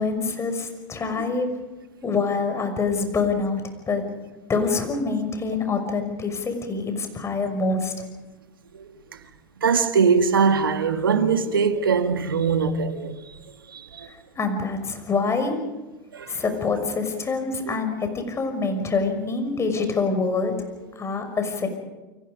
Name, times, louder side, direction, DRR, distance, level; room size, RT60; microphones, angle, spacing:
voice 1, 0.0-1.5 2.0-3.6 3.9-4.0 4.5-7.9 14.1-15.6 16.3-20.6 21.0-21.7, left 4 dB, 25° left, 6.0 m, -25 dB
voice 2, 9.6-13.2 13.7-14.1 16.1-16.3 17.7-17.8, right 5 dB, 80° right, 1.9 m, -22 dB
29.5 x 24.5 x 5.3 m
hypercardioid pair, 85°, 11 cm